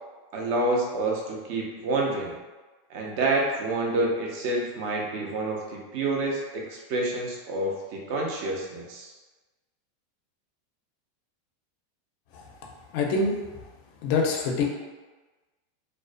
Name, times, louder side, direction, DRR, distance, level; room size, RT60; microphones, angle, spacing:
voice 1, 0.3-2.3 2.9-9.1, right 2 dB, 50° right, -2 dB, 0.5 m, -28 dB
voice 2, 12.9-13.3 14.0-14.6, left 4 dB, 50° left, 0 dB, 0.4 m, -24 dB
2.5 x 2.0 x 2.5 m, 1.2 s
supercardioid pair, 155°, 0 cm